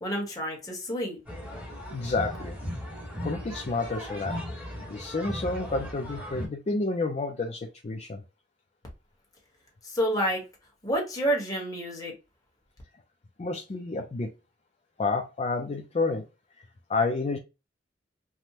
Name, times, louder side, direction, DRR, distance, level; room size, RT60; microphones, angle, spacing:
voice 1, 0.0-1.2 9.8-10.4 10.8-12.1, equal, 20° left, 1.1 m, -29 dB
sound 1, 1.3-6.5, equal, 10° right, 1.0 m, -37 dB
voice 2, 1.9-2.6 3.2-4.4 4.9-8.2 13.4-14.3 15.0-16.2 16.9-17.4, left 3 dB, 35° left, 0.4 m, -30 dB
3.4 x 2.1 x 2.8 m
head